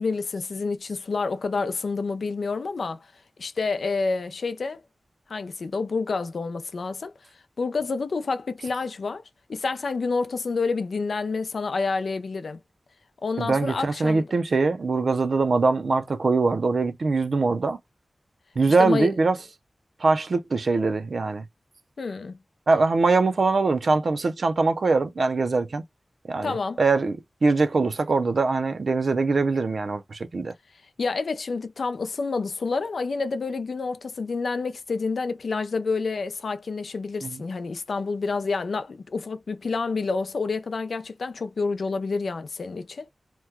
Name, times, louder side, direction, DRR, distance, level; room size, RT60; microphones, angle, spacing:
voice 1, 0.0-3.1 3.4-4.8 5.3-7.1 7.6-9.2 9.5-12.6 13.2-14.3 18.8-19.1 22.0-22.4 26.4-26.8 31.0-43.1, left 4 dB, 80° left, 0.5 m, -28 dB
voice 2, 13.4-17.8 18.6-19.4 20.0-21.5 22.7-25.8 26.3-30.5 37.2-37.4, right 3 dB, 70° right, 0.5 m, -22 dB
3.0 x 2.2 x 3.4 m
wide cardioid pair, 85°, 0 cm